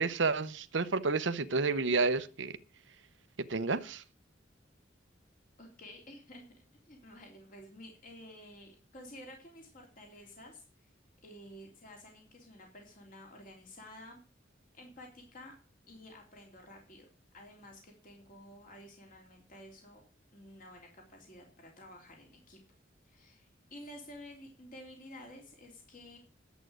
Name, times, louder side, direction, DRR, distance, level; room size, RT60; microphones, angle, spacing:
voice 1, 0.0-2.5 3.5-4.0, right 4 dB, 75° right, 0.9 m, -30 dB
voice 2, 5.6-6.4 6.9-10.9 11.2-14.2 14.7-15.5 15.9-17.1 17.3-20.0 20.3-22.6 23.0-26.2, left 1 dB, 45° left, 3.2 m, -52 dB
11.5 x 8.2 x 6.3 m
head